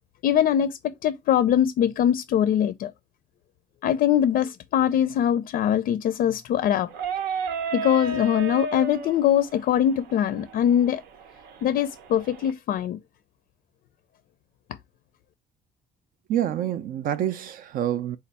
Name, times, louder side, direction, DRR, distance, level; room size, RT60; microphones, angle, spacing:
voice 1, 0.2-2.9 3.8-6.9 7.7-11.0 11.6-13.0, left 10 dB, 60° left, 0.4 m, -22 dB
sound 1, 6.9-12.5, right 4 dB, 85° right, 0.8 m, -33 dB
voice 2, 16.3-18.2, right 11 dB, 55° right, 0.4 m, -27 dB
4.2 x 2.4 x 4.0 m
cardioid pair, 110°, 17 cm